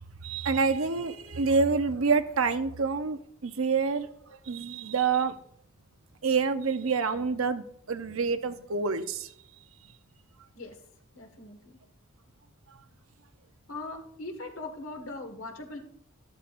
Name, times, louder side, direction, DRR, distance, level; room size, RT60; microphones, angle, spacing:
voice 1, 0.2-4.1 4.4-5.4 6.2-9.3, right 4 dB, 85° right, 9 dB, 0.8 m, -27 dB
voice 2, 11.1-11.8 13.7-15.8, left 2 dB, 85° left, 4 dB, 1.8 m, -40 dB
13.0 x 12.5 x 2.6 m, 0.67 s
head